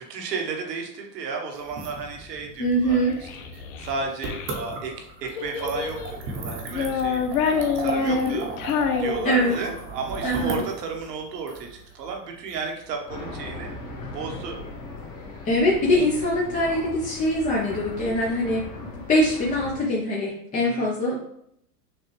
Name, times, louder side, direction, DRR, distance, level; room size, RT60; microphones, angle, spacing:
voice 1, 0.1-3.0 3.8-4.9 5.2-8.5 9.0-13.7 14.1-14.6 20.5-20.9, right 4 dB, 80° right, 1 dB, 1.3 m, -33 dB
sound 1, 1.6-13.4, right 3 dB, 25° right, 0.9 m, -37 dB
voice 2, 2.6-3.1 8.0-8.4 9.2-9.5 10.2-10.6 15.4-18.7 19.1-21.2, equal, 15° left, -4 dB, 0.6 m, -23 dB
Child speech kid speaking, 2.9-4.6 5.3-6.2 6.7-9.8, left 6 dB, 65° left, 0.7 m, -27 dB
sound 2, 13.1-19.8, left 2 dB, 40° left, 1.6 m, -38 dB
6.5 x 2.4 x 3.2 m, 0.73 s
hypercardioid pair, 120°, 48 cm